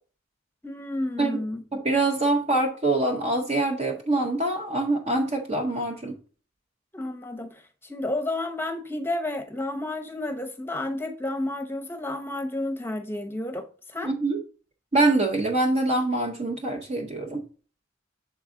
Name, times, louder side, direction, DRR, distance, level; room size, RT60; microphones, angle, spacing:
voice 1, 0.6-1.6 6.9-14.1, left 1 dB, 10° left, 0.8 m, -31 dB
voice 2, 1.7-6.2 14.0-14.4 14.9-17.4, right 2 dB, 35° right, 0.7 m, -24 dB
7.0 x 4.7 x 3.7 m
head